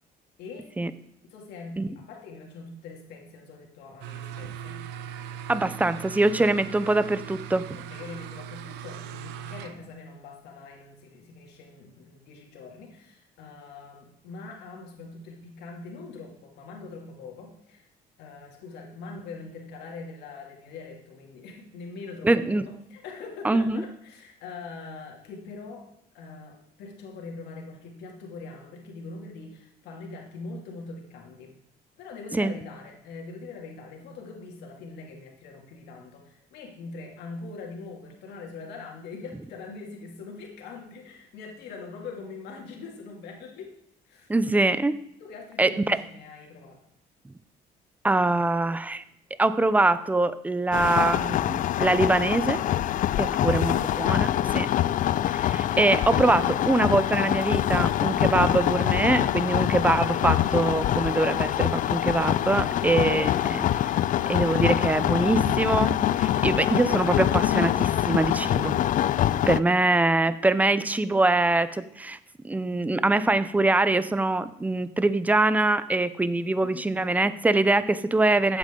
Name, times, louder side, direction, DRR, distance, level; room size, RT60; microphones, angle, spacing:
voice 1, 0.4-0.7 1.3-4.8 7.7-17.9 18.2-22.6 22.9-25.9 26.1-31.5 32.0-43.7 44.0-44.3 45.2-46.8 53.0-53.5 62.3-62.9 63.1-63.3 69.3-69.8 76.6-76.9 77.1-77.4, left 4 dB, 80° left, 0 dB, 2.8 m, -42 dB
sound 1, 4.0-9.9, right 9 dB, 90° right, 0.8 m, -39 dB
voice 2, 5.5-7.7 22.2-22.6 23.4-23.8 32.3-32.5 44.3-44.9 45.6-46.0 48.0-49.0 49.4-52.6 53.2-54.7 55.3-63.6 64.3-68.8 69.5-72.2 72.4-78.6, right 2 dB, 10° right, 14 dB, 0.6 m, -23 dB
sound 2, 50.7-69.6, left 12 dB, 50° left, 0.4 m, -24 dB
15.0 x 8.8 x 3.9 m, 0.78 s
cardioid pair, 110°, 17 cm